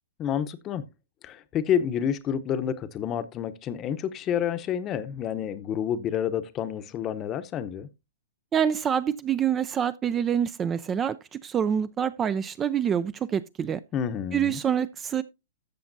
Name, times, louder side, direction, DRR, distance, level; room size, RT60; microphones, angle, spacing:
voice 1, 0.2-0.8 1.2-7.9 13.9-14.6, left 9 dB, 25° left, 0.8 m, -29 dB
voice 2, 8.5-13.8 14.3-15.2, right 8 dB, 20° right, 0.4 m, -26 dB
13.5 x 7.0 x 2.6 m
hypercardioid pair, 135°, 0 cm